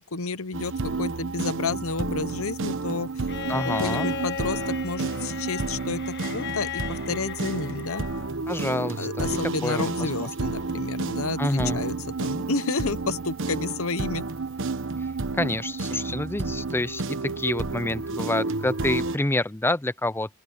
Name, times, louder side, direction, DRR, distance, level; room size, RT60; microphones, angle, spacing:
voice 1, 0.0-3.3 3.6-8.0 9.0-14.2, left 4 dB, 70° left, 1.0 m, -31 dB
sound 1, 0.5-19.2, right 3 dB, 65° right, 1.1 m, -31 dB
Bowed string instrument, 3.3-8.3 9.8-9.9, left 7 dB, 55° left, 1.4 m, -35 dB
voice 2, 3.5-4.1 8.5-10.5 11.4-11.8 15.3-20.4, left 2 dB, 10° left, 0.6 m, -28 dB
open air
head